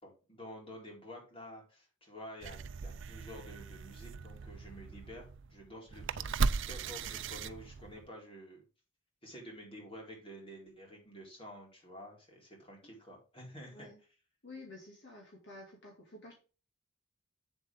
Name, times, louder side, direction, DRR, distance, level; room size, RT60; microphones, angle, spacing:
voice 1, 0.0-6.4 6.7-8.6 9.2-13.9, equal, 30° left, -1 dB, 4.1 m, -50 dB
sound 1, 2.4-8.1, right 4 dB, 65° right, 0.6 m, -37 dB
voice 2, 14.4-16.3, left 2 dB, 60° left, -1 dB, 2.4 m, -51 dB
8.0 x 7.3 x 3.6 m, 0.34 s
head